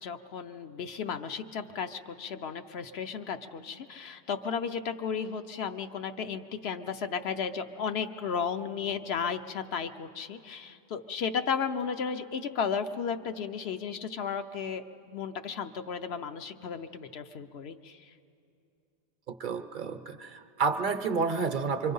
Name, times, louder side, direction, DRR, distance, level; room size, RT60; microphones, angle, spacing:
voice 1, 0.0-18.0, left 6 dB, 75° left, 8 dB, 1.0 m, -34 dB
voice 2, 19.4-21.9, right 5 dB, 55° right, 8 dB, 0.8 m, -30 dB
25.5 x 24.0 x 5.4 m, 2.6 s
omnidirectional pair, 1.1 m